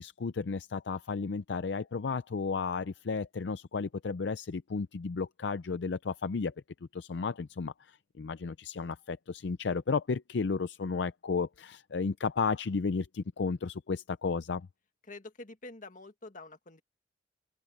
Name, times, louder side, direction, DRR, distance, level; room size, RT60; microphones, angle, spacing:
voice 1, 0.0-6.5 6.9-14.7, left 4 dB, 70° left, 0.5 m, -33 dB
voice 2, 15.1-16.8, left 2 dB, 45° left, 1.8 m, -47 dB
head